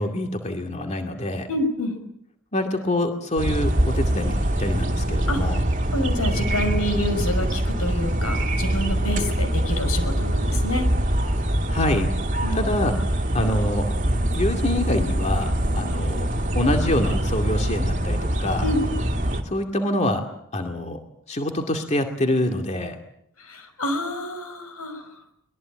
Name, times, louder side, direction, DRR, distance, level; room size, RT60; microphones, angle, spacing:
voice 1, 0.0-1.5 2.5-5.6 11.7-12.1 12.5-13.0 13.3-13.9 14.3-16.3 16.5-18.7 19.4-20.2 20.5-21.0 21.3-23.0, left 1 dB, 30° left, 5 dB, 2.2 m, -25 dB
voice 2, 1.5-1.9 5.3-5.4 5.9-10.9 12.4-12.8 18.6-18.8 23.4-25.1, left 1 dB, 85° left, 8 dB, 6.1 m, -28 dB
sound 1, 3.4-19.4, right 1 dB, 35° right, 2.6 m, -24 dB
24.0 x 21.5 x 8.8 m, 0.74 s
head